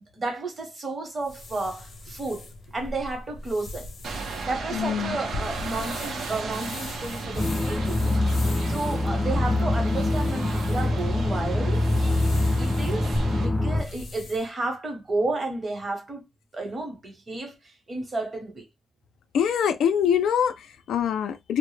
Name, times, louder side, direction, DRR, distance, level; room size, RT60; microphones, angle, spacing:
voice 1, 0.1-3.9 4.4-8.1 8.4-11.9 12.6-13.2 13.4-16.3 16.5-18.7, right 2 dB, 30° right, 0.9 m, -32 dB
sound 1, 1.2-14.5, left 2 dB, 50° left, 0.7 m, -40 dB
sound 2, 4.0-13.5, right 4 dB, 70° right, 0.6 m, -36 dB
voice 2, 4.7-5.2 19.3-21.6, left 8 dB, 85° left, 0.4 m, -24 dB
sound 3, 7.3-13.8, left 2 dB, 10° left, 0.4 m, -24 dB
2.1 x 2.0 x 3.1 m
cardioid pair, 120°, 0 cm